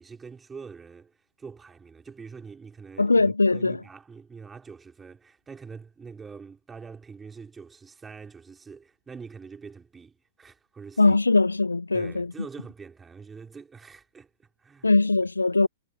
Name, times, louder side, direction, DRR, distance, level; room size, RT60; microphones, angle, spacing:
voice 1, 0.0-11.2 11.9-14.9, right 5 dB, 15° right, 4.3 m, -45 dB
voice 2, 3.0-3.8 11.0-12.3 14.8-15.7, left 3 dB, 85° left, 0.4 m, -21 dB
figure-of-eight pair, 110°, 0 cm